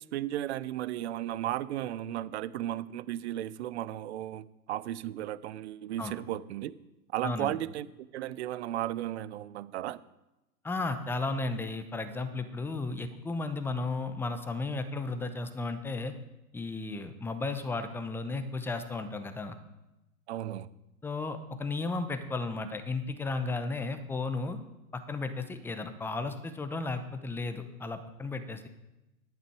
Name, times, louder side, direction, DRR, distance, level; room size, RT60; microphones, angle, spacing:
voice 1, 0.0-6.7 7.1-7.9 8.1-10.0 20.3-20.7, right 13 dB, 50° right, 18 dB, 0.6 m, -35 dB
voice 2, 7.2-7.6 10.6-16.2 16.5-19.6 21.0-24.6 24.9-28.7, left 3 dB, 5° left, 9 dB, 0.7 m, -34 dB
11.0 x 9.3 x 4.7 m, 0.97 s
hypercardioid pair, 110°, 44 cm